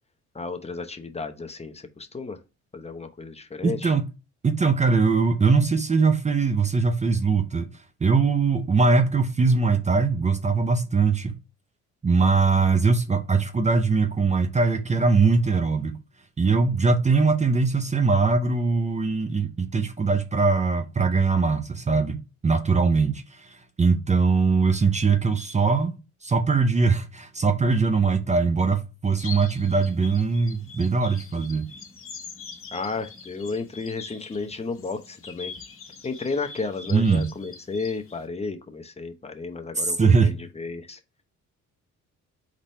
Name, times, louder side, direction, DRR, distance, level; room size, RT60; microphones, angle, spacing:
voice 1, 0.3-2.4 2.7-3.9 32.7-35.5 36.0-41.0, left 4 dB, 20° left, 0.7 m, -33 dB
voice 2, 3.6-4.0 4.4-7.7 8.0-11.4 12.0-16.0 16.4-31.7 36.9-37.3 39.8-40.3, right 4 dB, 25° right, 0.6 m, -21 dB
sound 1, 29.2-38.2, left 5 dB, 45° left, 1.3 m, -43 dB
4.0 x 3.2 x 4.2 m
cardioid pair, 90°, 30 cm